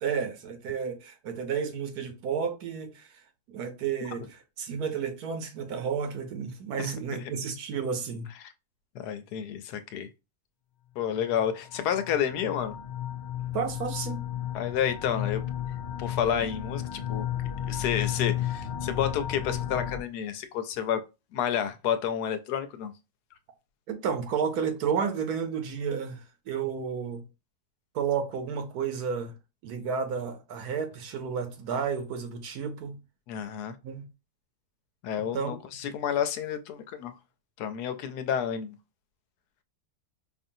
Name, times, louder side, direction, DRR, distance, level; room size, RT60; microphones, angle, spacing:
voice 1, 0.0-3.2 3.5-8.3 13.5-14.2 23.9-27.2 27.9-29.3 29.6-33.0 33.8-34.1 35.3-35.6, right 6 dB, 75° right, 1.3 m, -31 dB
voice 2, 8.9-10.1 11.0-12.8 14.5-15.4 16.0-17.3 17.7-21.0 21.3-22.9 33.3-33.8 35.0-37.1 37.6-38.7, left 9 dB, 85° left, 1.1 m, -30 dB
sound 1, 11.2-20.0, left 10 dB, 65° left, 0.6 m, -33 dB
5.2 x 2.6 x 2.6 m
omnidirectional pair, 1.7 m